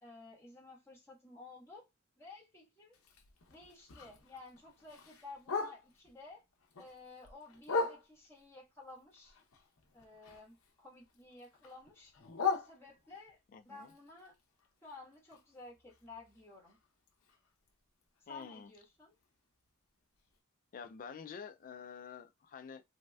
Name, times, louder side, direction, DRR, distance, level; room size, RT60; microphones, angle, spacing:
voice 1, 0.0-1.9 2.2-3.0 3.5-6.4 6.8-9.4 9.9-12.1 12.5-13.4 13.6-14.3 14.8-16.8 18.2-19.1, left 3 dB, 10° left, 1.4 m, -53 dB
Bark, 2.9-6.1 6.5-8.4 8.9-10.7 11.0-13.3 13.8-17.7 18.0-18.1 18.4-18.8 19.2-19.3 19.7-19.8 20.3-20.4, left 4 dB, 70° left, 0.7 m, -41 dB
voice 2, 13.5-13.9 18.3-18.7 20.7-22.8, left 6 dB, 40° left, 0.3 m, -48 dB
3.1 x 2.6 x 2.3 m
head